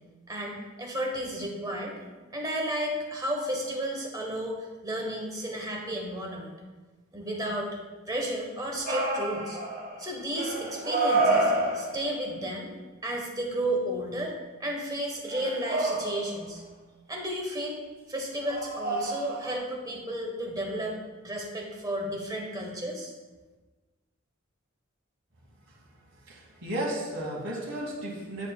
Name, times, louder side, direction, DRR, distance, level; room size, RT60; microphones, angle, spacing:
voice 1, 0.3-2.0 2.3-6.5 7.1-7.7 8.1-9.6 10.0-12.7 13.0-14.3 14.6-16.6 17.1-17.8 18.1-21.0 21.2-23.1, right 1 dB, 15° right, 0 dB, 1.0 m, -33 dB
sound 1, 8.9-10.1 10.4-12.1 15.3-16.5 18.4-19.5, right 2 dB, 40° right, 1.2 m, -28 dB
voice 2, 26.1-28.5, right 1 dB, 60° right, -2 dB, 1.7 m, -34 dB
9.7 x 5.3 x 2.2 m, 1.3 s
head